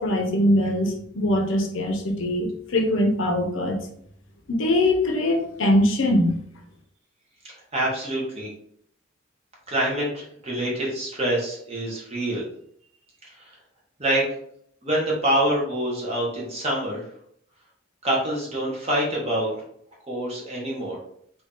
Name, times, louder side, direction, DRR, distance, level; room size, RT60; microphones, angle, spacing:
voice 1, 0.0-3.8 4.5-6.4, left 1 dB, 65° left, 2 dB, 0.7 m, -22 dB
voice 2, 7.7-8.5 9.7-12.4 14.0-14.2 14.8-17.0 18.0-19.5 20.1-21.0, right 1 dB, 30° right, -3 dB, 1.1 m, -25 dB
2.8 x 2.7 x 3.6 m, 0.66 s
head